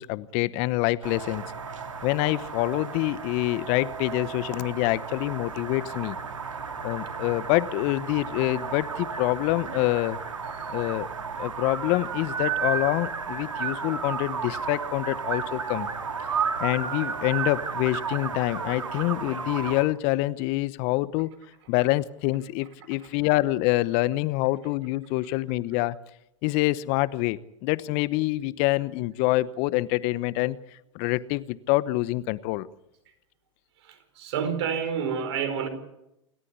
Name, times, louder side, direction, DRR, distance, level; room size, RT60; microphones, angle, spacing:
voice 1, 0.0-1.4 2.0-6.2 6.8-10.2 10.7-11.1 11.4-15.9 16.6-21.3 21.7-26.0 26.4-32.7, left 18 dB, 45° left, 0.9 m, -26 dB
sound 1, 1.0-19.8, right 6 dB, 85° right, 2.3 m, -33 dB
voice 2, 33.8-35.7, right 7 dB, 60° right, 4.6 m, -29 dB
28.5 x 14.0 x 8.3 m
hypercardioid pair, 105°, 16 cm